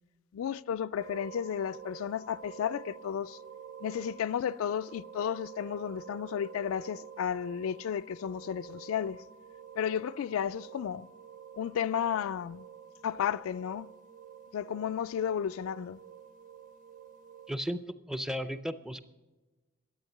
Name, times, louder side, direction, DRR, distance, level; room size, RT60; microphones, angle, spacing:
voice 1, 0.3-3.4 3.8-9.2 9.8-11.1 11.6-12.6 13.0-13.9 14.5-16.0, left 8 dB, 85° left, 0.3 m, -33 dB
sound 1, 1.0-17.5, right 8 dB, 40° right, 0.9 m, -49 dB
voice 2, 17.5-17.8 18.1-19.0, equal, 5° right, 0.4 m, -34 dB
12.0 x 8.8 x 6.5 m
head